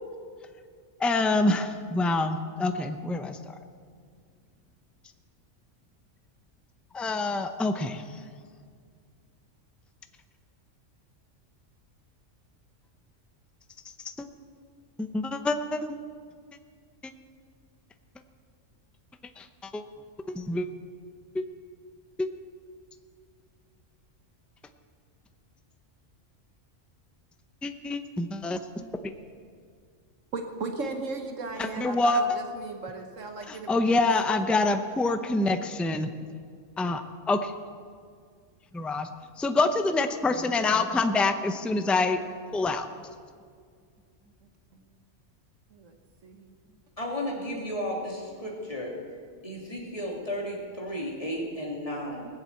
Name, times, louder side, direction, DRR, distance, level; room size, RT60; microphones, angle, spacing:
voice 1, 1.0-3.6 6.9-8.0 14.2-14.3 15.0-16.0 19.4-19.8 20.3-20.7 21.3-21.4 27.6-28.9 31.6-32.2 33.5-36.1 36.8-37.5 38.7-39.1 39.4-42.2 42.5-42.9, left 2 dB, ahead, 8 dB, 0.4 m, -26 dB
voice 2, 30.3-34.2 45.7-45.9 46.2-46.5, right 3 dB, 80° right, 4 dB, 1.5 m, -36 dB
voice 3, 47.0-48.9 49.4-52.3, equal, 25° left, -3 dB, 3.0 m, -33 dB
19.5 x 7.4 x 8.2 m, 2.1 s
omnidirectional pair, 1.3 m